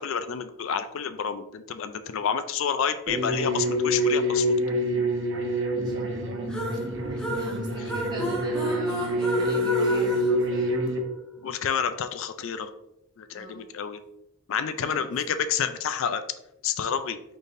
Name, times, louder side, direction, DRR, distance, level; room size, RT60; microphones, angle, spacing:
voice 1, 0.0-4.5 11.4-12.7 13.2-14.0 14.5-16.2 16.6-17.2, left 7 dB, 65° left, 10 dB, 0.3 m, -29 dB
sound 1, 3.1-11.0, equal, 60° right, 0.8 m, -26 dB
voice 2, 5.8-10.8 13.3-13.7 14.5-15.1, right 1 dB, 20° right, -3 dB, 1.0 m, -42 dB
sound 2, 6.5-11.2, equal, 5° left, 0.7 m, -33 dB
5.2 x 4.0 x 2.5 m, 0.84 s
head